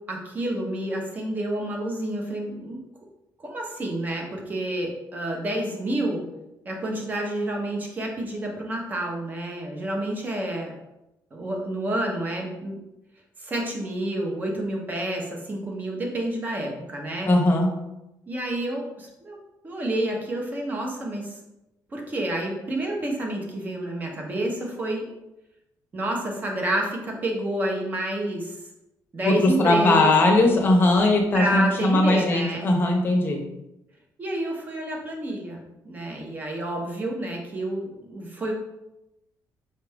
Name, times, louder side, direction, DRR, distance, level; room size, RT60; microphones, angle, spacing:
voice 1, 0.1-2.8 3.4-6.3 6.6-10.7 11.3-12.8 13.4-17.3 18.3-19.4 19.6-21.4 21.9-25.1 25.9-28.6 29.1-30.1 31.3-32.7 34.2-38.5, right 1 dB, 25° right, 0 dB, 0.8 m, -29 dB
voice 2, 17.3-17.8 29.2-33.4, left 2 dB, 30° left, 2 dB, 0.7 m, -19 dB
5.4 x 2.5 x 3.4 m, 0.92 s
cardioid pair, 170°, 7 cm